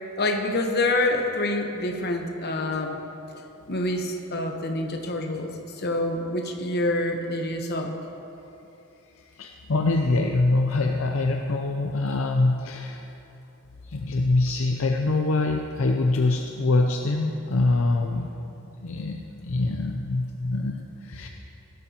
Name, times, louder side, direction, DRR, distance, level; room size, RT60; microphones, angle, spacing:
voice 1, 0.2-3.0 3.7-5.5 5.8-7.9, left 2 dB, 50° left, 3 dB, 1.1 m, -26 dB
voice 2, 9.3-13.1 13.8-18.3 18.6-21.3, left 2 dB, 65° left, 3 dB, 0.6 m, -24 dB
17.0 x 12.5 x 3.0 m, 2.9 s
head